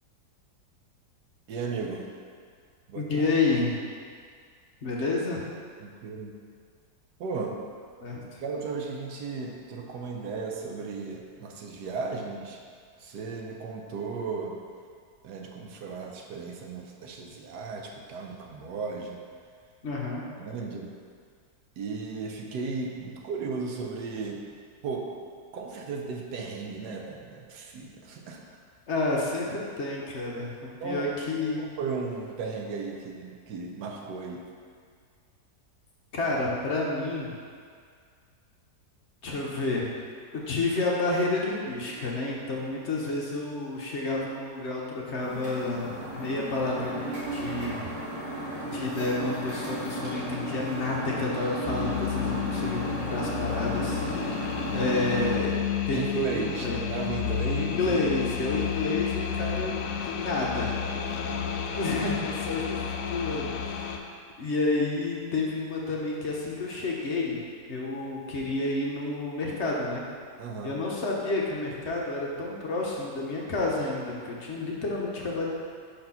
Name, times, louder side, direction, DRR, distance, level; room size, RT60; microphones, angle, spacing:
voice 1, 1.5-2.1 2.9-3.1 5.8-6.4 7.2-7.6 8.4-12.6 13.0-14.6 15.2-19.2 20.4-20.9 21.8-24.4 24.8-25.2 25.5-28.6 30.8-31.1 31.6-34.5 55.9-58.0 60.9-61.8 70.4-70.8, right 4 dB, 75° right, 1 dB, 1.3 m, -35 dB
voice 2, 2.9-3.7 4.8-5.4 8.0-8.4 19.8-20.2 28.9-31.6 36.1-37.3 39.2-39.8 40.3-47.9 48.7-55.5 55.9-56.9 57.5-59.8 60.0-60.8 61.8-63.8 64.4-67.4 67.7-70.0 70.6-75.5, left 2 dB, 50° left, -3 dB, 1.1 m, -30 dB
sound 1, 45.2-55.4, equal, 45° right, 1.9 m, -34 dB
sound 2, 51.6-64.0, left 8 dB, 70° left, 0.8 m, -31 dB
5.5 x 4.3 x 5.6 m, 2.1 s
omnidirectional pair, 1.8 m